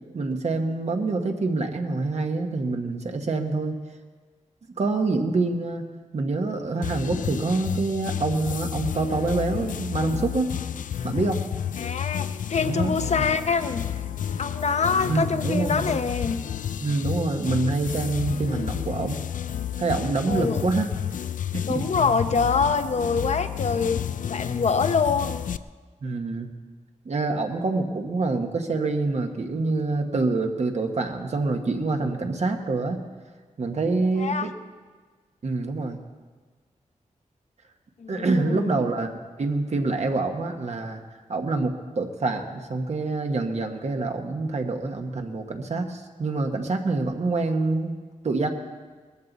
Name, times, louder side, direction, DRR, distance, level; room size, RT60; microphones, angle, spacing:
voice 1, 0.1-3.8 4.8-5.8 6.1-10.5 11.0-11.4 12.7-13.2 15.1-16.0 16.8-19.2 19.8-20.9 21.5-21.9 26.0-26.5 27.0-33.0 33.6-34.5 35.4-36.0 38.1-39.1 39.4-41.0 41.3-47.9 48.2-48.5, right 3 dB, 55° right, 4 dB, 1.3 m, -26 dB
sound 1, 6.8-25.6, left 9 dB, 80° left, 0.4 m, -31 dB
voice 2, 11.8-13.9 14.4-16.4 20.3-20.6 21.6-25.4 34.2-34.5 38.0-38.8, left 5 dB, 60° left, 10 dB, 0.8 m, -25 dB
20.0 x 14.0 x 4.1 m, 1.5 s
wide cardioid pair, 140°, 13 cm